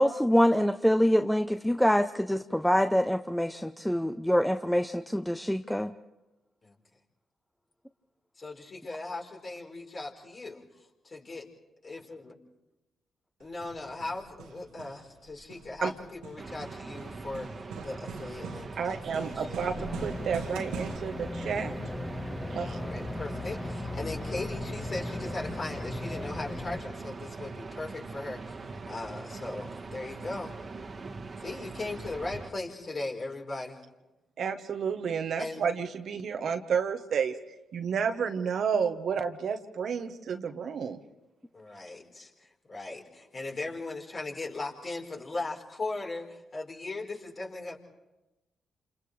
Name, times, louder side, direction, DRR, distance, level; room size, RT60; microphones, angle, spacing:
voice 1, 0.0-5.9, equal, 5° left, 8 dB, 0.7 m, -25 dB
voice 2, 8.4-10.6 11.0-11.5 11.8-12.3 13.4-17.5 17.8-19.7 22.7-28.5 28.9-30.5 31.4-33.8 35.4-35.6 41.5-47.8, left 2 dB, 45° left, -1 dB, 4.3 m, -38 dB
Hammer, 13.4-21.0, right 5 dB, 80° right, 1.6 m, -44 dB
sound 1, 16.4-32.5, right 3 dB, 45° right, 1.6 m, -42 dB
voice 3, 18.8-21.7 22.5-22.8 34.4-37.3 37.7-41.0, right 6 dB, 65° right, 7 dB, 1.2 m, -31 dB
sound 2, 19.7-26.8, left 2 dB, 25° left, 1.9 m, -37 dB
28.0 x 28.0 x 3.3 m, 1.0 s
hypercardioid pair, 45°, 0 cm